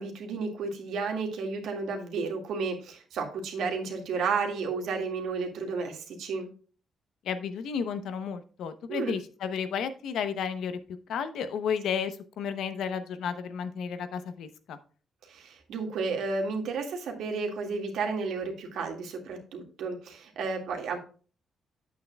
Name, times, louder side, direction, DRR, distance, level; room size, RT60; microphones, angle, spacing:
voice 1, 0.0-6.5 8.9-9.2 15.3-21.0, right 4 dB, 75° right, 3 dB, 2.0 m, -32 dB
voice 2, 7.2-10.8 11.1-14.8, left 7 dB, 70° left, 11 dB, 0.8 m, -32 dB
9.5 x 8.4 x 2.3 m, 0.39 s
cardioid pair, 170°, 0 cm